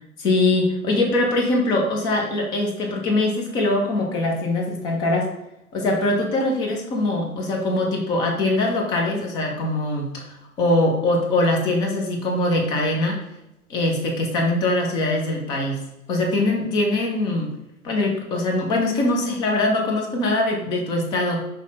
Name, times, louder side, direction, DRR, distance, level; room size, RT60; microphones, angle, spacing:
voice 1, 0.2-5.3 5.7-13.2 13.7-15.8 16.1-17.5 17.8-21.4, left 2 dB, 10° left, 1 dB, 0.3 m, -22 dB
5.6 x 2.1 x 4.0 m, 0.86 s
figure-of-eight pair, 100°, 43 cm